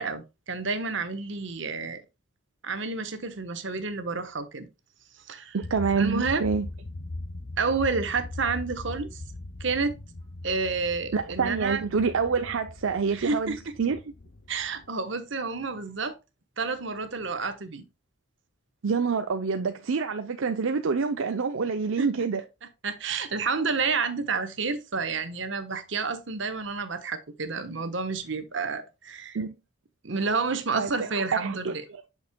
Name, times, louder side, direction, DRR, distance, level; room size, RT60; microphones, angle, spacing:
voice 1, 0.0-2.0 2.6-4.7 5.3-5.6 6.0-6.4 7.6-9.2 9.6-9.9 10.4-11.8 13.1-13.6 14.5-16.1 16.6-17.8 22.0-22.1 22.8-29.4 30.0-31.8, right 4 dB, 65° right, 1.1 m, -30 dB
voice 2, 5.5-6.7 11.1-14.0 18.8-22.4 29.3-29.5 30.7-31.7, right 5 dB, 80° right, 0.6 m, -27 dB
sound 1, 5.6-14.9, left 2 dB, 55° left, 0.7 m, -40 dB
8.6 x 6.4 x 2.2 m
head